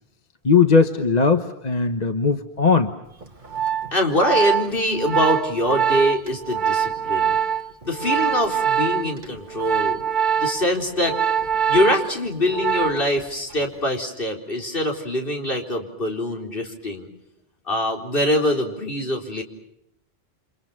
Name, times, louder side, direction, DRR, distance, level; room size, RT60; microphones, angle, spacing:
voice 1, 0.4-2.9, left 5 dB, 40° left, 7 dB, 1.3 m, -18 dB
Organ, 3.2-13.2 13.5-13.8, right 8 dB, 50° right, 1.5 m, -24 dB
voice 2, 3.9-7.4 7.8-10.0 10.4-11.2 11.7-17.1 17.7-19.4, left 1 dB, 60° left, 1 dB, 4.5 m, -23 dB
29.5 x 27.0 x 5.9 m, 0.80 s
omnidirectional pair, 1.0 m